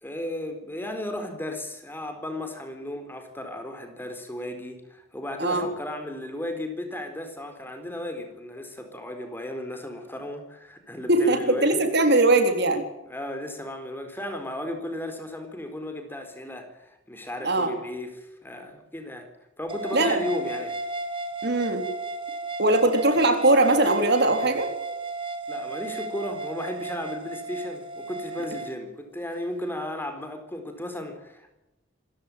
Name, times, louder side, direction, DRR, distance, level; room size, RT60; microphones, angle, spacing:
voice 1, 0.0-11.8 13.1-19.3 19.6-20.7 25.5-31.5, left 1 dB, 10° left, 6 dB, 4.1 m, -35 dB
voice 2, 11.1-12.8 17.4-17.7 19.9-20.2 21.4-21.8 22.6-24.7, right 2 dB, 60° right, 6 dB, 4.0 m, -21 dB
sound 1, 19.7-28.7, right 3 dB, 25° right, 2.1 m, -34 dB
26.5 x 16.0 x 9.0 m, 0.94 s
head